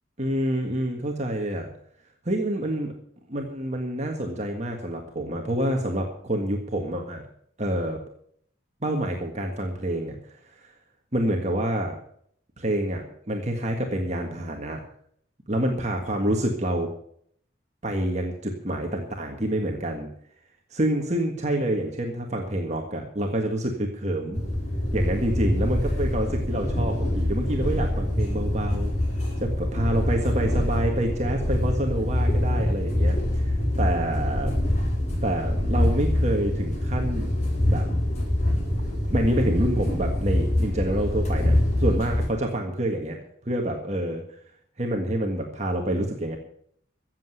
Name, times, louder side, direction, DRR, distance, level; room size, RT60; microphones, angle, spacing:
voice 1, 0.2-1.7 2.2-2.9 3.3-7.2 7.6-8.0 8.8-10.1 11.1-11.9 12.6-14.8 15.5-16.9 17.8-20.1 20.7-24.4 24.9-28.9 29.4-33.4 33.8-34.5 35.2-37.3 37.6-37.8 39.1-43.2 43.4-44.2 44.8-46.4, right 1 dB, 35° right, 1 dB, 1.7 m, -27 dB
sound 1, 24.3-42.3, left 1 dB, 35° left, 4.2 m, -25 dB
14.5 x 7.8 x 8.0 m, 0.65 s
head